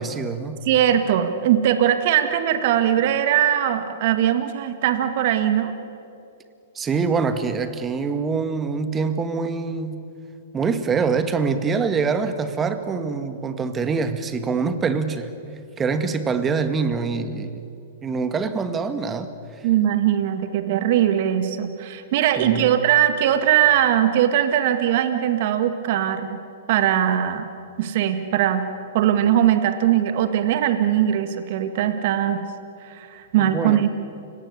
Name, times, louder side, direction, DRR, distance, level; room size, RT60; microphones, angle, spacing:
voice 1, 0.0-0.6 6.8-10.1 10.5-15.3 15.8-17.6 18.0-19.3 22.4-22.7 33.4-33.8, right 5 dB, 20° right, 10 dB, 1.8 m, -24 dB
voice 2, 0.6-5.7 19.6-26.4 26.7-27.5 27.8-28.6 28.9-32.4 32.8-33.9, right 10 dB, 55° right, 9 dB, 1.9 m, -20 dB
30.0 x 18.0 x 8.4 m, 2.7 s
hypercardioid pair, 115°, 0 cm